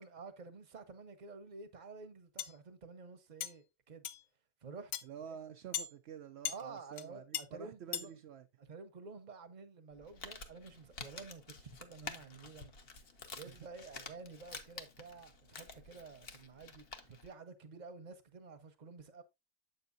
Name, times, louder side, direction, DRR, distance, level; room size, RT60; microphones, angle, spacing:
voice 1, 0.0-4.1 4.6-4.9 5.3-5.4 6.5-8.1 8.6-12.7 13.3-19.2, right 4 dB, 35° right, 0.8 m, -51 dB
sound 1, 2.4-2.5 3.4-3.5 4.0-4.2 4.9-5.0 5.7-5.9 6.5-6.6 7.0-7.1 7.3-7.4 7.9-8.1, left 10 dB, 70° left, 0.5 m, -37 dB
voice 2, 5.0-8.4 13.5-13.6, right 8 dB, 75° right, 0.6 m, -49 dB
Crumpling crinkling, 9.9-17.3, left 4 dB, 45° left, 0.9 m, -50 dB
7.7 x 6.7 x 2.5 m
omnidirectional pair, 1.6 m